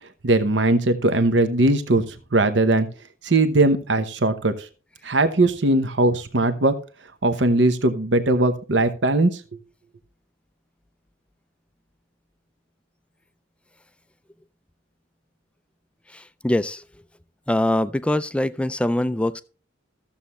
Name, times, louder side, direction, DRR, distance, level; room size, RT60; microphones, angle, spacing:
voice 1, 0.2-2.0 2.3-2.9 3.2-4.7 5.0-6.7 7.2-9.4, right 2 dB, 65° right, 0.9 m, -19 dB
voice 2, 16.1-16.8 17.5-19.4, left 1 dB, 5° left, 0.4 m, -23 dB
14.5 x 7.1 x 3.1 m
head